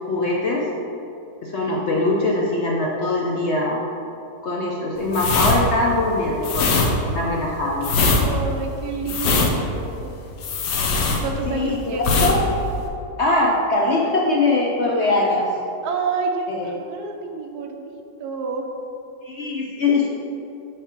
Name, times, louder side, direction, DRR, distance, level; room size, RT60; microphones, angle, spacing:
voice 1, 0.1-0.7 1.4-3.9 4.4-7.9 11.5-12.4 13.2-15.5 16.5-16.7 19.2-20.1, left 2 dB, 60° left, -2 dB, 0.7 m, -22 dB
sound 1, 5.1-11.7 12.0-12.4 12.6-12.9, left 3 dB, 80° left, 1.4 m, -21 dB
voice 2, 8.2-10.1 11.2-12.3 12.6-12.7 14.1-14.2 15.8-18.7, right 4 dB, 70° right, 3 dB, 1.2 m, -29 dB
7.5 x 3.3 x 6.0 m, 2.7 s
omnidirectional pair, 1.8 m